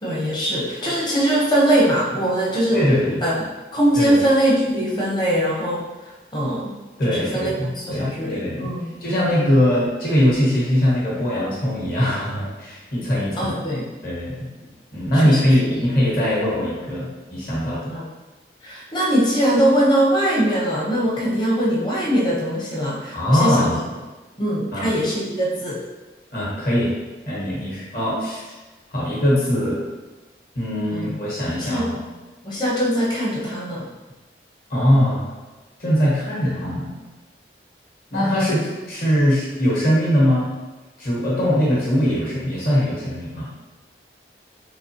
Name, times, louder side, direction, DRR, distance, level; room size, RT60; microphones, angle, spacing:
voice 1, 0.0-2.8 3.2-3.4 3.7-5.8 6.3-6.8 7.0-8.9 13.4-13.9 15.1-15.5 17.9-18.0 18.6-23.7 24.4-25.8 30.9-31.2 31.6-31.9 32.4-33.9, right 1 dB, 25° left, -5 dB, 0.7 m, -21 dB
voice 2, 2.7-3.2 4.0-4.2 7.0-8.7 9.0-13.5 14.0-14.5 14.9-17.9 23.1-23.8 24.7-24.9 26.3-26.9 27.3-28.4 28.9-29.8 30.5-32.0 34.7-35.3 35.8-36.9 38.1-40.5 41.0-43.5, equal, 50° left, -6 dB, 1.2 m, -21 dB
3.8 x 3.0 x 2.9 m, 1.2 s
head